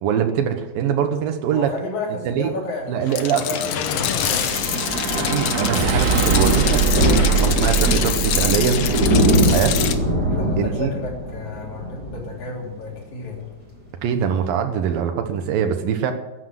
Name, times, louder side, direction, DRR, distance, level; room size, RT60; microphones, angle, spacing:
voice 1, 0.0-1.7 2.3-2.5 2.9-3.5 5.2-6.9 7.4-9.8 10.6-10.9 14.0-16.1, right 8 dB, 85° right, 6 dB, 3.0 m, -23 dB
voice 2, 1.4-4.8 10.1-13.5, left 3 dB, 55° left, -1 dB, 4.7 m, -32 dB
sound 1, 3.1-10.0, left 10 dB, 70° left, 1.5 m, -25 dB
Thunder, 3.6-13.0 13.3-13.6 13.9-14.0 14.1-14.2, right 1 dB, 25° right, 4.5 m, -22 dB
sound 2, 4.1-10.5, right 7 dB, 65° right, 3.6 m, -24 dB
14.0 x 10.0 x 7.9 m, 1.0 s
omnidirectional pair, 4.0 m